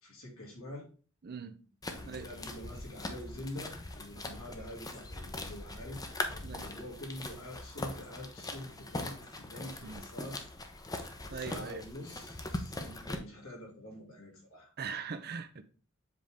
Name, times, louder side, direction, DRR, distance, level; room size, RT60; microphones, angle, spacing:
voice 1, 0.0-0.9 1.9-10.4 11.3-14.7, left 1 dB, 70° left, 2.4 m, -46 dB
voice 2, 1.2-1.6 2.1-2.3 6.4-6.7 9.8-10.1 11.3-11.8 14.8-15.6, right 5 dB, 50° right, 0.6 m, -41 dB
sound 1, 1.8-13.2, left 2 dB, 20° left, 0.7 m, -41 dB
7.5 x 3.5 x 3.6 m
head